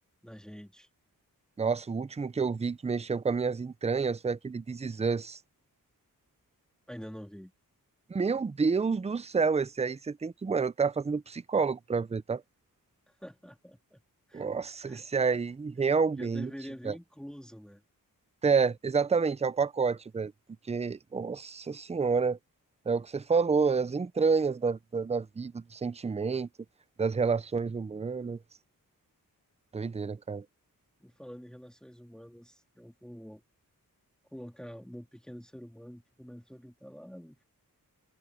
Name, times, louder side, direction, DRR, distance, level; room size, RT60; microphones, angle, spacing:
voice 1, 0.2-0.9 6.9-7.5 13.1-14.0 14.3-14.4 14.8-15.4 16.2-17.8 31.0-33.4 34.3-37.4, equal, ahead, 3.2 m, -46 dB
voice 2, 1.6-5.4 8.1-12.4 14.3-16.5 16.8-16.9 18.4-20.3 20.7-22.4 22.9-26.5 27.0-28.4 29.7-30.4, right 5 dB, 20° right, 0.4 m, -29 dB
wide cardioid pair, 115°, 35 cm